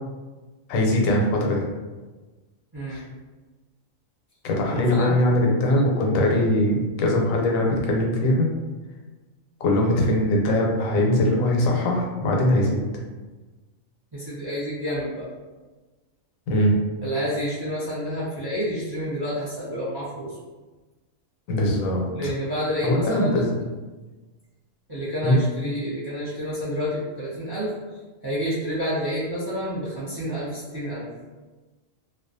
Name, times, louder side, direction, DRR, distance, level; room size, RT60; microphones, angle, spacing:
voice 1, 0.7-1.6 2.9-3.0 4.4-8.5 9.6-12.8 16.5-16.8 21.5-22.3 22.8-23.6 25.2-25.4, left 1 dB, 85° left, 0 dB, 1.0 m, -21 dB
voice 2, 4.7-5.1 14.1-15.3 17.0-20.3 22.1-23.4 24.9-31.1, equal, 40° right, -9 dB, 0.3 m, -29 dB
2.3 x 2.2 x 2.5 m, 1.2 s
omnidirectional pair, 1.4 m